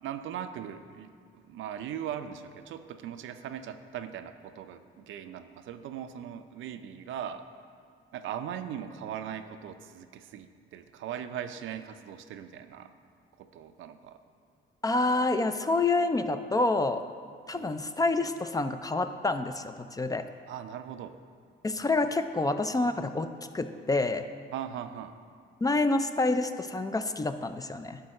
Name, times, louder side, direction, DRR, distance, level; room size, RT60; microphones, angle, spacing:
voice 1, 0.0-7.5 8.1-12.9 13.4-14.2 17.5-17.8 20.5-21.2 24.5-25.2, right 9 dB, 80° right, 9 dB, 0.5 m, -39 dB
voice 2, 14.8-17.0 17.5-20.2 21.6-23.3 23.5-24.2 25.6-28.0, left 2 dB, 20° left, 9 dB, 0.4 m, -28 dB
10.5 x 3.9 x 6.4 m, 2.1 s
cardioid pair, 90°, 20 cm